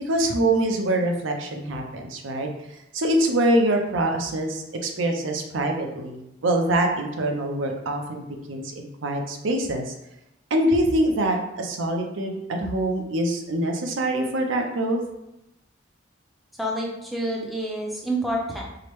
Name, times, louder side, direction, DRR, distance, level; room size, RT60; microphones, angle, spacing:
voice 1, 0.1-2.5 2.9-8.0 8.5-9.9 10.5-15.0, right 1 dB, 75° right, 3 dB, 0.5 m, -24 dB
voice 2, 16.6-18.6, right 1 dB, ahead, -3 dB, 0.5 m, -28 dB
4.7 x 2.1 x 3.0 m, 0.89 s
head